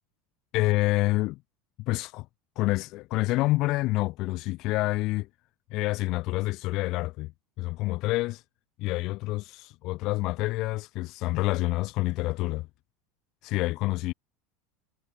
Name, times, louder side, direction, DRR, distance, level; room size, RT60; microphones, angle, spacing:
voice 1, 0.5-1.4 1.8-2.3 2.6-5.3 5.7-7.3 7.6-8.4 8.8-12.7 13.4-14.1, left 20 dB, 50° left, 0.5 m, -27 dB
figure-of-eight pair, 75°, 0 cm